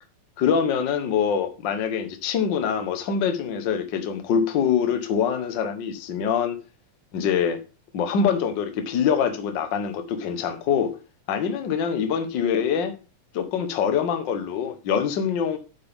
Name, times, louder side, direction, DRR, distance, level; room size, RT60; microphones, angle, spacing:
voice 1, 0.4-6.6 7.1-7.6 7.9-10.9 11.3-12.9 13.3-15.6, left 7 dB, 75° left, 1.0 m, -24 dB
8.6 x 8.0 x 3.6 m
omnidirectional pair, 3.7 m